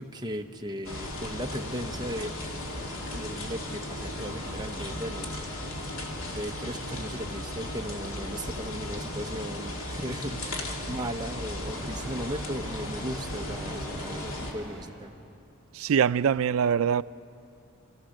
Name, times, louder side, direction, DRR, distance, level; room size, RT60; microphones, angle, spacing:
voice 1, 0.0-2.4 3.1-5.3 6.3-15.1, equal, 20° right, 1.0 m, -37 dB
sound 1, 0.8-14.5, left 1 dB, 80° left, 2.3 m, -36 dB
sound 2, 10.9-11.1 11.6-15.2, right 1 dB, 5° left, 4.3 m, -44 dB
voice 2, 15.7-17.0, right 7 dB, 80° right, 0.4 m, -23 dB
29.0 x 14.5 x 6.6 m
head